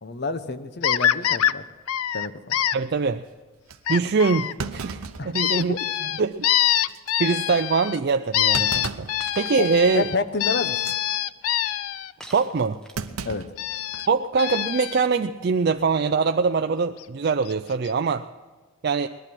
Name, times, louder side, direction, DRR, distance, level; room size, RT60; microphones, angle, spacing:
voice 1, 0.0-1.6 2.1-2.6 5.2-5.8 9.6-10.9 13.2-13.5, left 3 dB, 50° left, 11 dB, 0.8 m, -29 dB
sound 1, 0.8-1.5 1.9-2.7 3.9-4.5 5.3-8.0 8.3-12.1 13.6-14.1 14.4-15.1 17.0-17.1 17.5-17.6 17.8-17.9, left 12 dB, 85° left, 0.4 m, -24 dB
voice 2, 2.7-3.2 3.9-5.8 6.2-6.5 7.2-9.1 9.4-10.1 12.3-12.8 14.1-18.2 18.8-19.1, right 5 dB, 50° right, 7 dB, 0.4 m, -23 dB
Thump thud, 3.7-3.8 4.6-5.9 6.3-6.4 6.9-7.1 8.5-9.2 9.6-9.9 10.7-11.0 12.9-14.2 14.5-14.6 15.7-16.0, right 4 dB, 85° right, 0.8 m, -35 dB
Shatter, 9.2-9.8 12.2-13.2, right 1 dB, 5° left, 1.0 m, -44 dB
20.0 x 11.5 x 6.0 m, 1.4 s
head